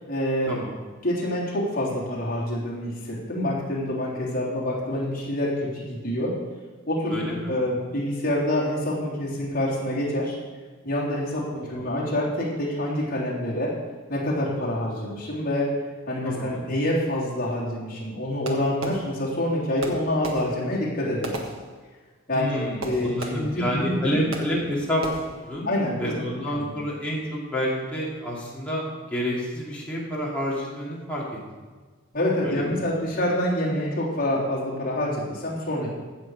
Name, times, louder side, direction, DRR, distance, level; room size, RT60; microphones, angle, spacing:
voice 1, 0.1-0.5 1.0-6.3 6.9-7.2 7.5-10.4 10.8-13.7 14.1-15.7 16.1-21.4 22.3-24.2 25.6-26.1 26.5-26.7 32.1-35.9, left 1 dB, 40° left, -7 dB, 3.3 m, -26 dB
voice 2, 7.1-7.5 11.3-11.9 16.2-16.6 22.3-25.1 25.4-25.7 26.0-31.2 32.4-32.6, equal, 5° left, -6 dB, 2.5 m, -29 dB
Fireworks, 18.4-19.5 19.8-22.2 22.8-23.7 24.3-24.7 25.0-25.5, right 1 dB, 75° right, 1.6 m, -37 dB
15.5 x 6.6 x 4.8 m, 1.4 s
head